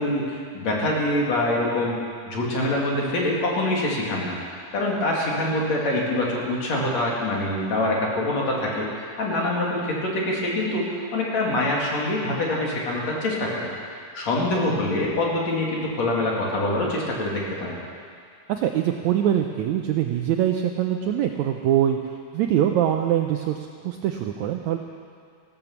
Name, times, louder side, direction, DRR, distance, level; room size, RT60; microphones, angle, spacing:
voice 1, 0.0-2.0 2.3-13.7 14.0-17.8, left 1 dB, 50° left, -3 dB, 3.5 m, -25 dB
voice 2, 18.5-24.8, right 10 dB, 85° right, 4 dB, 1.6 m, -23 dB
15.5 x 13.0 x 7.2 m, 2.2 s
omnidirectional pair, 4.0 m